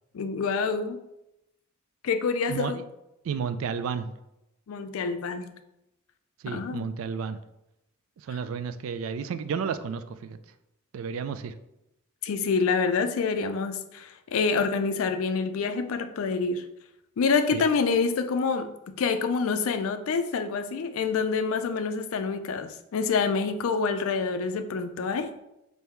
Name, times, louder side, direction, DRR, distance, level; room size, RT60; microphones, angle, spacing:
voice 1, 0.1-1.0 2.0-2.8 4.7-5.5 6.5-6.9 8.3-8.4 12.2-16.6 17.2-25.3, left 5 dB, 70° left, 9 dB, 0.4 m, -27 dB
voice 2, 2.5-2.8 3.2-4.1 6.4-7.4 8.2-10.4 10.9-11.5 17.5-17.6, right 6 dB, 70° right, 12 dB, 0.3 m, -32 dB
3.6 x 2.6 x 4.4 m, 0.88 s
head